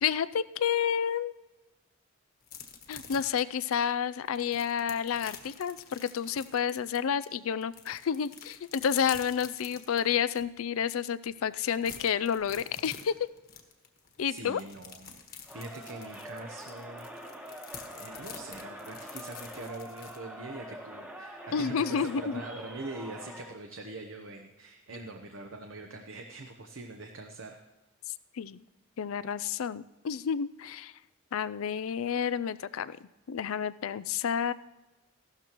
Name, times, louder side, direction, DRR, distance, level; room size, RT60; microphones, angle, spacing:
voice 1, 0.0-1.3 2.9-13.3 14.2-14.6 21.5-22.4 28.3-28.6 29.0-30.9 31.3-33.0 33.3-34.5, left 7 dB, 85° left, 16 dB, 0.4 m, -30 dB
sound 1, 2.4-7.3 7.6-10.4 10.9-11.0 11.3-20.2, left 7 dB, 45° left, 1.4 m, -47 dB
voice 2, 14.3-15.2 15.5-17.1 17.5-27.6, right 2 dB, 65° right, 3 dB, 0.9 m, -43 dB
Crowd, 15.5-23.6, right 1 dB, 10° right, 1.2 m, -45 dB
15.5 x 12.5 x 3.0 m, 1.1 s
head